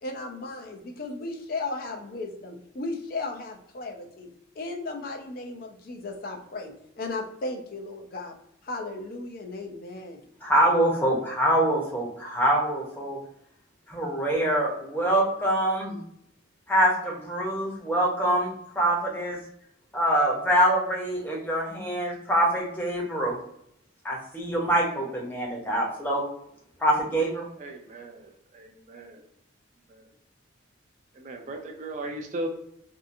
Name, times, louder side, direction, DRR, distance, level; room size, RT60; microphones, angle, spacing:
voice 1, 0.0-4.3 4.6-8.3 8.6-10.2, left 2 dB, 45° left, 3 dB, 0.4 m, -35 dB
voice 2, 10.4-13.2 13.9-16.0 16.7-19.4 19.9-23.4 24.0-26.2 26.8-27.5, right 1 dB, 10° left, -3 dB, 0.7 m, -25 dB
voice 3, 27.6-29.2 29.9-30.0 31.1-32.5, right 1 dB, 35° right, 3 dB, 0.3 m, -37 dB
2.7 x 2.4 x 2.5 m, 0.74 s
head